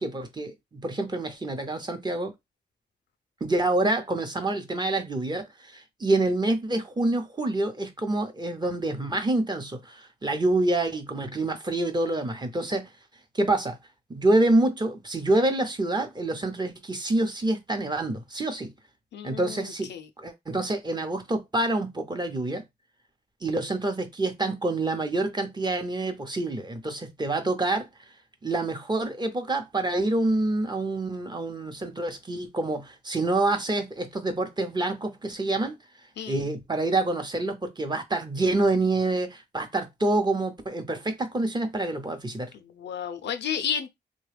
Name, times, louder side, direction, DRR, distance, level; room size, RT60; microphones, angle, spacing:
voice 1, 0.0-2.3 3.4-12.9 13.3-13.8 14.1-18.7 19.2-19.9 20.2-22.6 23.4-27.9 28.4-35.7 36.3-42.5, right 2 dB, 25° right, 0.8 m, -27 dB
voice 2, 19.1-20.1 36.2-36.5 42.5-43.9, left 8 dB, 85° left, 0.5 m, -32 dB
3.2 x 2.2 x 3.3 m
cardioid pair, 85°, 18 cm